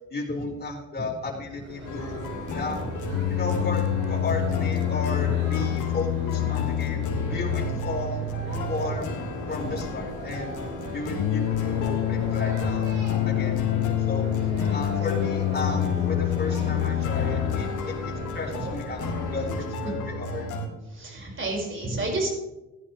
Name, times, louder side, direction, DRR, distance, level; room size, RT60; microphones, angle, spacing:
voice 1, 0.1-2.2 2.5-2.9 3.3-8.2 8.7-9.1 9.5-10.6 10.9-12.9 13.3-14.3 14.7-20.5, left 3 dB, 30° left, -1 dB, 4.4 m, -34 dB
sound 1, 1.6-19.5, right 1 dB, 90° right, 5.1 m, -38 dB
sound 2, 1.8-20.7, left 2 dB, 80° left, 2.4 m, -34 dB
sound 3, 3.1-17.6, left 15 dB, 65° left, 0.5 m, -27 dB
voice 2, 20.9-22.3, right 2 dB, 40° right, 0 dB, 5.1 m, -30 dB
15.5 x 11.5 x 3.2 m, 0.99 s
cardioid pair, 90°, 30 cm